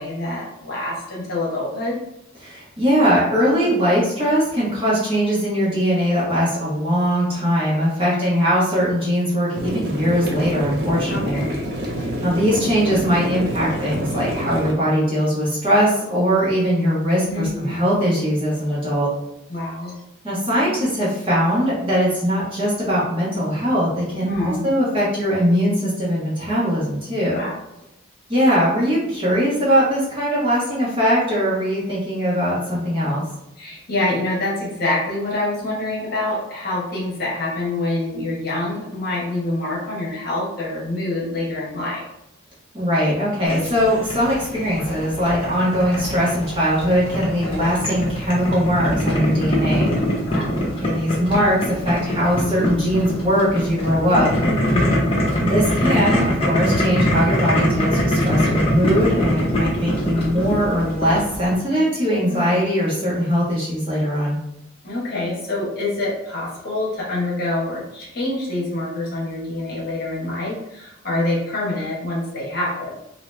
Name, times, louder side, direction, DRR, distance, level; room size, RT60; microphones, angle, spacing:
voice 1, 0.0-2.0 8.0-8.4 11.1-11.7 17.3-17.7 19.5-19.9 24.2-24.7 27.3-27.5 33.6-42.1 47.6-47.8 50.3-50.6 54.7-55.1 62.3-62.6 64.8-72.9, left 2 dB, 50° left, -5 dB, 1.1 m, -26 dB
voice 2, 2.4-11.4 11.9-19.1 20.2-27.4 28.3-33.2 42.7-49.9 50.8-54.3 55.4-64.4, equal, 25° right, -9 dB, 1.4 m, -20 dB
sound 1, 9.5-14.7, equal, 50° right, 0.6 m, -27 dB
Boiling, 43.5-61.5, equal, 30° left, 0.7 m, -23 dB
3.0 x 2.8 x 3.2 m, 0.86 s
head